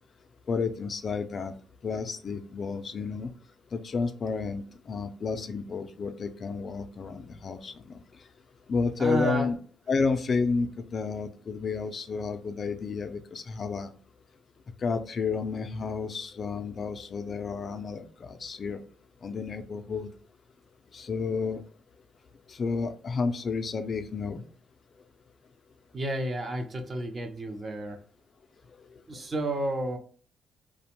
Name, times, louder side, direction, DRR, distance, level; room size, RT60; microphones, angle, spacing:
voice 1, 0.5-1.5 1.8-3.3 3.7-8.0 8.7-9.6 9.9-13.9 14.8-18.8 19.2-20.1 20.9-21.6 22.5-24.4 28.9-29.0, left 4 dB, 45° left, 9 dB, 0.3 m, -31 dB
voice 2, 9.0-9.5 25.9-28.0 29.1-30.0, right 1 dB, 35° right, 5 dB, 0.5 m, -31 dB
2.5 x 2.1 x 2.9 m, 0.42 s
cardioid pair, 90°, 0 cm